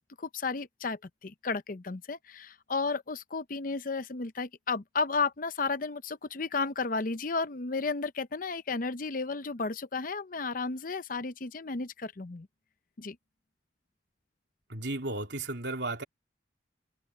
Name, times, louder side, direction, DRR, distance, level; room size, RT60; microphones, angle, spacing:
voice 1, 0.0-12.5 13.0-13.2, left 4 dB, 50° left, 0.8 m, -33 dB
voice 2, 14.7-16.0, right 2 dB, 80° right, 3.4 m, -34 dB
head